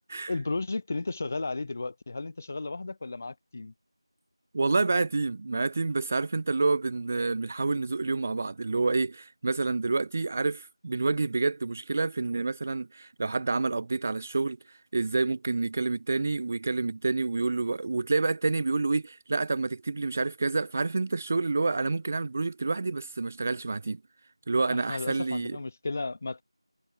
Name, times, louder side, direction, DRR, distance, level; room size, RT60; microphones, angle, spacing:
voice 1, 0.3-3.7 24.6-26.4, left 3 dB, 25° left, 1.6 m, -34 dB
voice 2, 4.5-14.6 14.9-24.0 24.5-25.6, right 3 dB, 20° right, 1.0 m, -28 dB
figure-of-eight pair, 175°, 3 cm